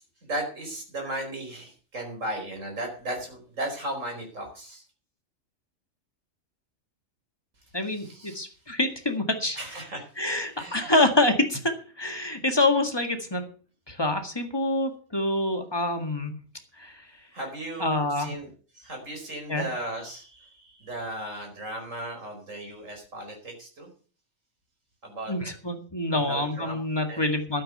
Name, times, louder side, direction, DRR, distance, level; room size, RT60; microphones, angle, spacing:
voice 1, 0.0-4.8 8.0-8.4 9.6-10.1 10.5-11.0 17.3-23.9 25.0-25.3 26.1-26.8 27.1-27.3, right 1 dB, 70° right, 2 dB, 5.3 m, -36 dB
voice 2, 7.7-9.6 10.2-13.4 13.9-16.4 16.8-17.1 17.8-18.4 19.5-19.7 25.3-27.6, left 2 dB, 20° left, 6 dB, 1.8 m, -26 dB
12.5 x 9.0 x 6.6 m, 0.40 s
omnidirectional pair, 1.4 m